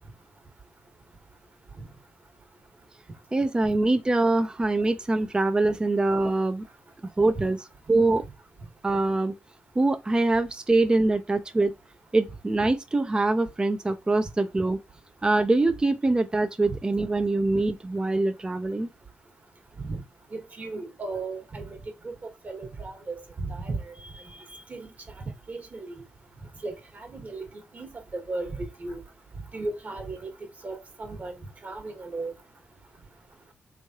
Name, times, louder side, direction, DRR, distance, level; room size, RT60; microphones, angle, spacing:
voice 1, 3.3-6.6 7.2-7.6 7.9-8.2 8.8-9.3 9.8-11.7 12.1-14.8 15.2-18.9, right 2 dB, 20° right, 0.5 m, -24 dB
voice 2, 20.3-21.8 22.0-22.1 22.4-24.1 24.7-24.9 25.5-25.9 26.6-27.5 27.7-27.9 28.1-29.0 29.5-30.3 30.6-31.4 31.6-32.3, right 3 dB, 45° right, 1.3 m, -35 dB
3.4 x 3.2 x 2.8 m
cardioid pair, 60°, 4 cm